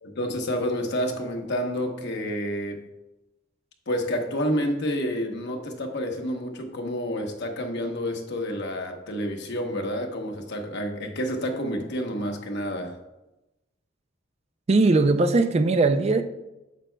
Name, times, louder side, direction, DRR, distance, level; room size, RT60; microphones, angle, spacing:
voice 1, 0.0-2.8 3.9-13.0, equal, 55° left, 1.0 m, -29 dB
voice 2, 14.7-16.2, right 3 dB, 30° right, 0.3 m, -19 dB
9.1 x 7.4 x 2.2 m
head